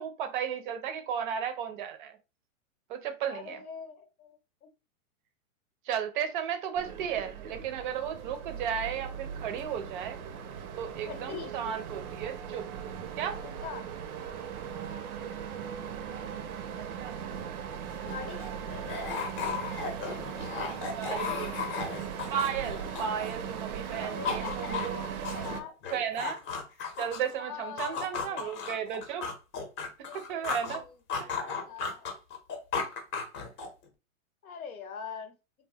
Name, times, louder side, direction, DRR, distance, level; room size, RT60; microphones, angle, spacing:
voice 1, 0.0-2.2 2.9-3.6 5.9-10.2 10.8-12.7 13.2-13.4 16.1-16.2 16.7-17.4 21.0-21.8 22.3-25.0 25.9-26.4 27.0-29.3 30.3-30.9 31.2-31.3, right 8 dB, 40° right, 0.5 m, -34 dB
voice 2, 3.2-4.7 11.1-11.6 13.4-13.9 18.1-18.6 21.0-21.6 24.0-26.2 27.4-28.8 30.1-32.2 34.4-35.3, left 7 dB, 90° left, 0.8 m, -43 dB
sound 1, 6.8-25.6, right 8 dB, 90° right, 0.6 m, -39 dB
sound 2, 17.7-17.8 18.0-23.5 23.8-27.3 27.8-30.8 31.1-33.8, left 5 dB, 30° left, 0.7 m, -35 dB
3.0 x 2.1 x 2.7 m
hypercardioid pair, 135°, 41 cm